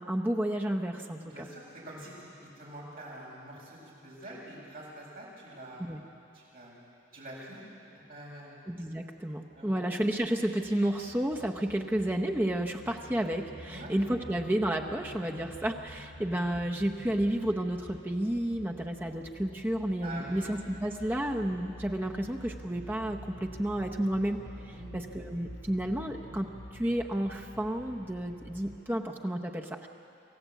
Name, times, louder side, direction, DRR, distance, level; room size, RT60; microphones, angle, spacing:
voice 1, 0.0-1.5 5.9-6.0 8.7-24.4 24.9-29.9, right 1 dB, 10° right, 1 dB, 0.9 m, -31 dB
voice 2, 1.2-2.1 2.4-5.9 6.3-7.6 8.1-8.5 9.5-9.9 13.7-13.9 20.0-20.5 24.7-24.9, right 1 dB, 50° right, -5 dB, 7.3 m, -45 dB
sound 1, 9.5-28.7, equal, 75° left, 5.8 m, -49 dB
27.0 x 15.5 x 8.3 m, 2.6 s
head